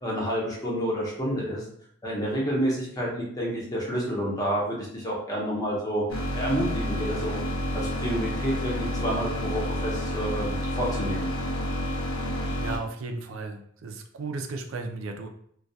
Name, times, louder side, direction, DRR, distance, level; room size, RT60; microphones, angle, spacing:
voice 1, 0.0-1.6 2.0-6.0 6.3-7.4 7.7-11.3, equal, 15° left, -4 dB, 0.6 m, -29 dB
sound 1, 6.1-12.8, equal, 85° left, 0.5 m, -29 dB
voice 2, 12.6-15.3, right 3 dB, 65° right, 5 dB, 0.4 m, -35 dB
2.2 x 2.2 x 2.6 m, 0.65 s
head